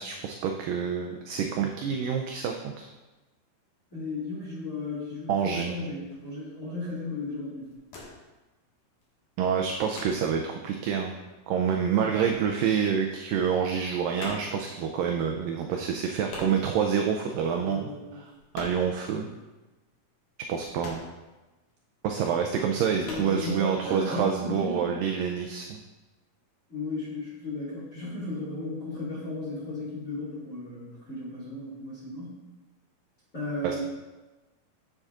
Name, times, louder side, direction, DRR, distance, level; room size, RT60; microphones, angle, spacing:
voice 1, 0.0-2.9 5.3-5.7 9.4-11.1 11.5-18.3 18.5-19.3 20.5-21.0 22.0-25.8 33.6-33.8, right 7 dB, 85° right, 3 dB, 1.9 m, -27 dB
voice 2, 3.9-7.7 17.6-18.2 23.0-24.8 26.7-32.4 33.3-33.8, left 2 dB, 30° left, -8 dB, 1.6 m, -35 dB
sound 1, 6.1-6.4 6.9-7.1 7.4-8.4 8.6-10.5 10.9-13.1 13.4-19.1 19.4-19.5 19.9-21.8 22.2-22.3 22.7-23.3, left 2 dB, 60° left, 2.9 m, -44 dB
8.8 x 7.7 x 2.4 m, 1.1 s
omnidirectional pair, 4.5 m